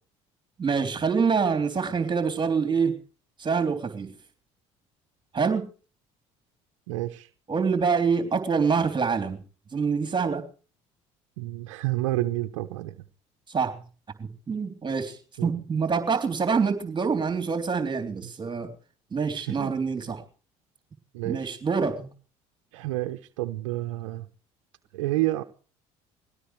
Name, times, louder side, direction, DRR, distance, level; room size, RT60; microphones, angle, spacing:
voice 1, 0.6-3.0 3.4-4.1 5.3-5.7 7.5-9.4 9.7-10.5 13.5-13.8 14.2-18.7 19.1-20.2 21.3-22.1, right 5 dB, 30° right, 3.5 m, -26 dB
voice 2, 6.9-7.3 11.4-12.9 15.4-15.5 19.4-19.7 21.1-21.5 22.7-24.3 24.9-25.4, right 17 dB, 85° right, 0.9 m, -29 dB
21.5 x 17.0 x 3.3 m
hypercardioid pair, 70°, 16 cm